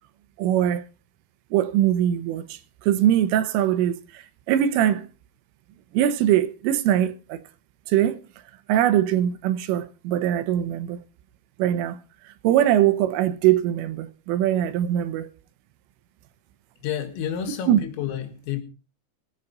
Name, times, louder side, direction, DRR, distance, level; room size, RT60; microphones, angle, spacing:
voice 1, 0.4-0.8 1.5-2.6 2.9-4.0 4.5-5.1 5.9-7.4 7.9-8.2 8.7-11.0 11.6-12.0 12.4-15.3 17.7-17.8, right 11 dB, 80° right, 3.5 m, -21 dB
voice 2, 16.8-18.6, left 9 dB, 80° left, 4.2 m, -30 dB
22.0 x 8.6 x 4.0 m
omnidirectional pair, 5.9 m